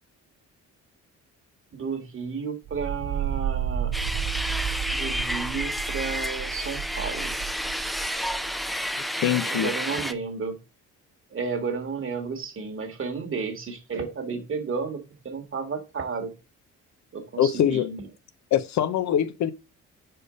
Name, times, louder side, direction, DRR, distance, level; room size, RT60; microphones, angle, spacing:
voice 1, 1.7-3.9 4.9-7.4 9.4-10.6 11.3-16.3 17.1-18.1, right 5 dB, 45° right, 1.6 m, -32 dB
sound 1, 2.6-8.7, right 9 dB, 75° right, 1.2 m, -32 dB
sound 2, 3.9-10.1, equal, ahead, 0.5 m, -30 dB
voice 2, 9.2-9.7 17.4-17.9 18.5-19.5, left 10 dB, 65° left, 0.7 m, -23 dB
5.0 x 4.5 x 4.8 m
cardioid pair, 90°, 30 cm